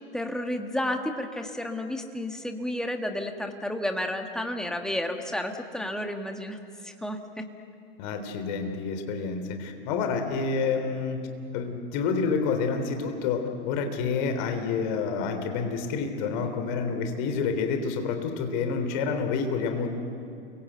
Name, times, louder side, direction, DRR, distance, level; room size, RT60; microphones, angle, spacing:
voice 1, 0.1-6.6 6.8-7.4, left 1 dB, ahead, 4 dB, 1.8 m, -31 dB
voice 2, 8.0-11.2 11.5-19.9, left 5 dB, 45° left, 7 dB, 3.6 m, -28 dB
29.5 x 23.5 x 8.0 m, 2.6 s
figure-of-eight pair, 100°, 32 cm